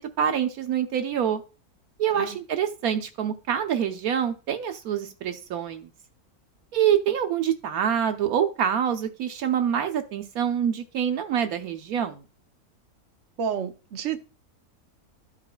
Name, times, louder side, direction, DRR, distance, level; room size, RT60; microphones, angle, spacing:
voice 1, 0.0-1.4 2.0-5.9 6.7-12.2, right 9 dB, 75° right, 6 dB, 1.2 m, -26 dB
voice 2, 13.4-14.3, right 7 dB, 55° right, 6 dB, 1.0 m, -30 dB
13.0 x 4.9 x 2.3 m, 0.32 s
omnidirectional pair, 1.6 m